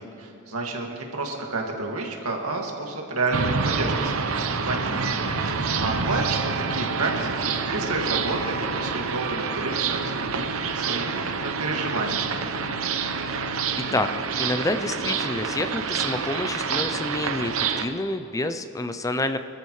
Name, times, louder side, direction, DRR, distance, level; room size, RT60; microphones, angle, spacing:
voice 1, 0.0-12.4, right 3 dB, 90° right, 1 dB, 2.1 m, -30 dB
sound 1, 3.3-17.8, right 5 dB, 70° right, 0.8 m, -27 dB
sound 2, 4.9-13.9, left 1 dB, 45° right, 1.5 m, -44 dB
voice 2, 14.4-19.4, left 2 dB, 15° left, 10 dB, 0.5 m, -28 dB
25.5 x 13.5 x 3.2 m, 2.9 s
head